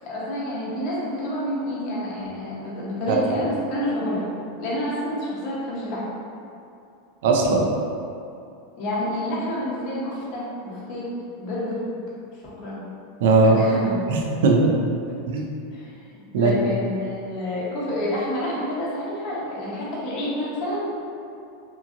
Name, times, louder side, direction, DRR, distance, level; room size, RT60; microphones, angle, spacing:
voice 1, 0.0-4.3 4.6-6.0 8.8-11.0 11.4-11.8 12.4-12.8 13.4-14.1 15.7-20.9, left 1 dB, 50° left, -7 dB, 0.8 m, -28 dB
voice 2, 7.2-7.7 13.2-13.6 14.1-14.7 15.3-15.5 16.3-16.5, right 3 dB, 75° right, 0 dB, 0.4 m, -18 dB
2.9 x 2.6 x 2.4 m, 2.6 s
supercardioid pair, 140°, 0 cm